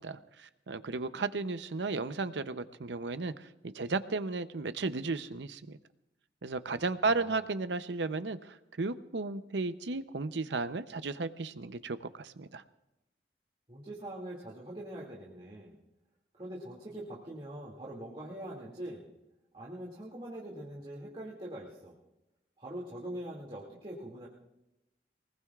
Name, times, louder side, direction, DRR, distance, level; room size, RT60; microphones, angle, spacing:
voice 1, 0.0-5.8 6.4-12.6, right 3 dB, 85° right, 12 dB, 0.7 m, -34 dB
voice 2, 7.1-7.4 13.7-15.7 16.4-19.1 19.5-21.9 22.6-24.3, right 1 dB, 30° right, -5 dB, 2.4 m, -43 dB
24.0 x 20.0 x 2.4 m, 0.93 s
head